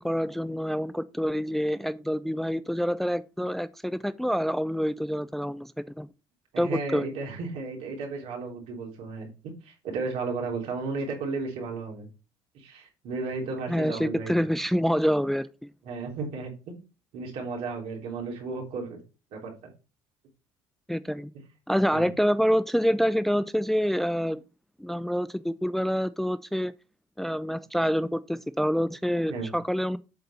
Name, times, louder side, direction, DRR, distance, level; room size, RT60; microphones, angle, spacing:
voice 1, 0.0-6.1 6.6-7.1 13.7-15.5 20.9-21.3 21.7-24.4 24.8-26.7 27.2-30.0, equal, ahead, 0.4 m, -27 dB
voice 2, 6.5-12.1 12.5-14.3 15.8-16.8 17.1-19.0 19.3-19.7 21.9-22.1 29.3-29.5, right 4 dB, 75° right, 3.4 m, -34 dB
8.0 x 4.0 x 5.4 m
supercardioid pair, 80°, 11 cm